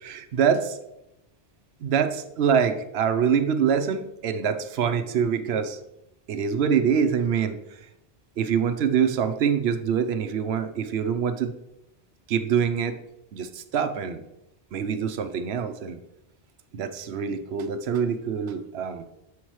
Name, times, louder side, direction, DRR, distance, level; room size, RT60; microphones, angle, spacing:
voice 1, 0.0-0.8 1.8-5.8 6.3-7.6 8.4-11.5 12.3-13.0 13.3-14.2 14.7-16.0 16.7-19.0, right 7 dB, 70° right, 10 dB, 0.9 m, -25 dB
7.8 x 5.9 x 3.1 m, 0.86 s
omnidirectional pair, 1.1 m